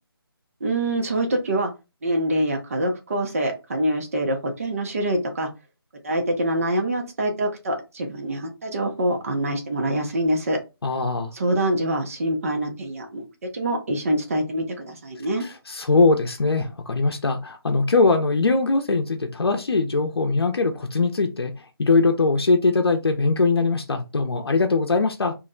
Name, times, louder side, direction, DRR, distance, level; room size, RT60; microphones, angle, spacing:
voice 1, 0.6-1.7 2.0-5.5 6.0-10.6 11.3-13.3 13.5-15.4, right 1 dB, 35° right, 0.6 m, -25 dB
voice 2, 10.8-11.3 15.4-21.5 21.8-25.3, left 3 dB, 80° left, 0.6 m, -21 dB
2.5 x 2.1 x 3.7 m
figure-of-eight pair, 165°, 13 cm